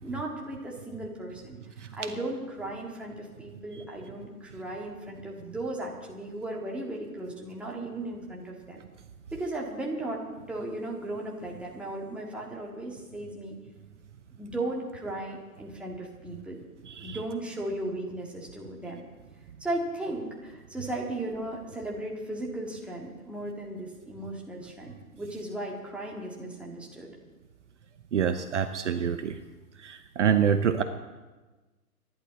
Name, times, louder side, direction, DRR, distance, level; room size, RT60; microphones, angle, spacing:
voice 1, 0.0-1.6 1.9-8.8 9.3-10.2 10.5-13.6 14.4-16.6 17.0-19.0 19.6-27.1, right 1 dB, ahead, -2 dB, 1.9 m, -36 dB
voice 2, 16.9-17.2 28.1-29.4 29.8-30.8, right 8 dB, 50° right, 9 dB, 1.0 m, -26 dB
25.5 x 11.5 x 4.2 m, 1.2 s
figure-of-eight pair, 125°, 46 cm